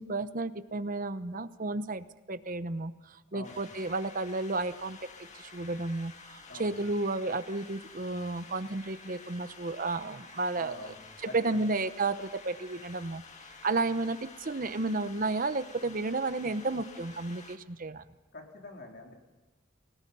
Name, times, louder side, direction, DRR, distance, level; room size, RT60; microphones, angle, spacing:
voice 1, 0.0-5.0 5.3-10.9 11.3-13.2 13.6-18.0, right 3 dB, 40° right, 12 dB, 0.9 m, -32 dB
sound 1, 3.4-17.6, left 4 dB, 35° left, 1.9 m, -51 dB
voice 2, 10.6-11.6 18.3-19.1, left 2 dB, 50° left, 1 dB, 3.9 m, -46 dB
29.0 x 18.0 x 5.5 m, 1.2 s
head